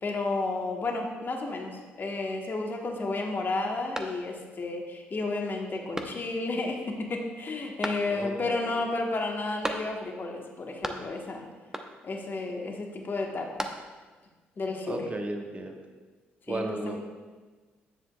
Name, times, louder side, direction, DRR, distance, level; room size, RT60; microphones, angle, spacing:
voice 1, 0.0-11.4 12.0-13.7 14.6-15.0 16.5-17.0, left 3 dB, 40° left, 1 dB, 1.3 m, -32 dB
sound 1, 3.9-4.6 5.0-5.1 5.9-6.6 7.8-8.4 9.6-10.2 10.5-11.3 11.7-12.2 13.2-14.2, right 1 dB, 10° right, 0.8 m, -37 dB
voice 2, 8.1-8.5 14.9-15.8 16.5-17.0, right 2 dB, 25° right, 3 dB, 1.1 m, -34 dB
10.0 x 7.2 x 2.3 m, 1.3 s
hypercardioid pair, 45°, 5 cm